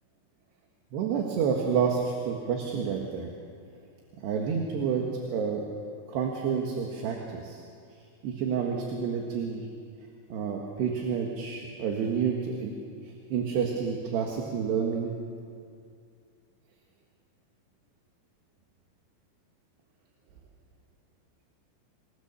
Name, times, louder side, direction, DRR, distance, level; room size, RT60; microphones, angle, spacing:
voice 1, 0.9-3.3 4.2-5.7 6.1-7.6 8.2-9.7 10.3-12.7 13.0-15.1, right 6 dB, 70° right, 1 dB, 3.7 m, -29 dB
27.5 x 20.0 x 7.1 m, 2.3 s
omnidirectional pair, 5.1 m